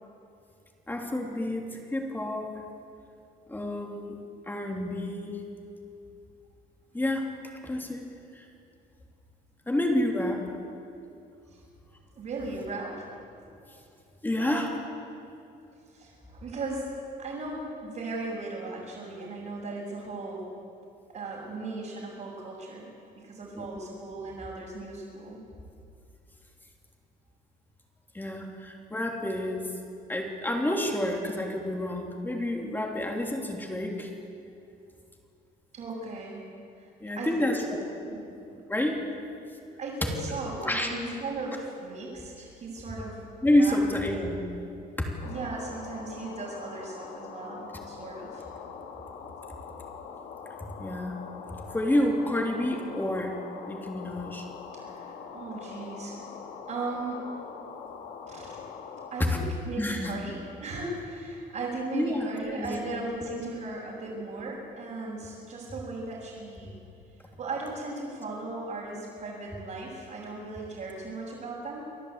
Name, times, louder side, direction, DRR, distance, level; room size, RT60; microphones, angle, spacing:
voice 1, 0.9-2.5 3.5-4.2 4.5-5.4 6.9-7.3 7.6-8.0 8.3-8.4 9.7-10.4 14.2-14.7 23.5-23.8 28.1-29.7 30.1-34.1 37.0-37.9 38.7-39.0 40.6-40.9 43.4-44.4 50.8-51.2 51.7-53.4 53.7-54.4 59.3-59.4 59.8-60.1 61.9-62.8, left 1 dB, 10° left, 1 dB, 3.2 m, -29 dB
voice 2, 12.2-13.1 14.3-14.6 15.9-16.9 17.2-20.5 21.1-22.9 23.1-25.4 35.7-36.5 37.1-37.5 38.0-38.4 39.8-43.2 43.6-43.8 45.2-48.4 54.8-56.2 56.7-57.2 58.3-58.6 59.1-66.8 67.4-71.8, right 3 dB, 50° right, -8 dB, 6.3 m, -37 dB
sound 1, 45.2-59.1, left 6 dB, 80° left, 2.2 m, -43 dB
28.5 x 11.5 x 8.3 m, 2.6 s
cardioid pair, 110°, 17 cm